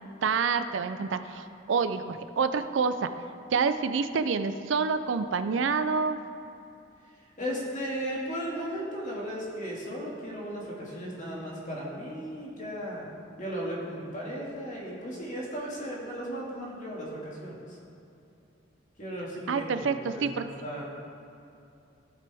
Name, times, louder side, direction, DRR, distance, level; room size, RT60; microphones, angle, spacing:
voice 1, 0.2-3.1 3.5-6.2 19.5-20.5, right 5 dB, 75° right, 10 dB, 0.4 m, -27 dB
voice 2, 7.4-13.1 13.4-17.8 19.0-19.9 20.1-20.8, equal, 40° left, -4 dB, 2.1 m, -36 dB
15.0 x 5.9 x 3.5 m, 2.7 s
head